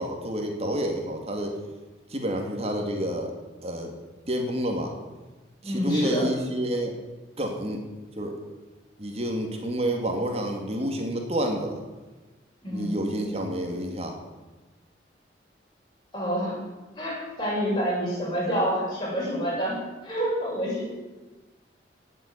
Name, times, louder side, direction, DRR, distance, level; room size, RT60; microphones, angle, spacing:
voice 1, 0.0-1.6 2.1-3.3 3.6-3.9 4.3-4.9 5.6-7.0 7.4-7.8 8.2-8.4 9.0-11.8 12.7-14.2, right 1 dB, 35° right, 2 dB, 2.5 m, -29 dB
voice 2, 5.6-6.3 12.6-13.0 16.1-16.6 17.0-20.9, equal, 25° left, -5 dB, 6.8 m, -28 dB
17.5 x 8.0 x 8.8 m, 1.2 s
head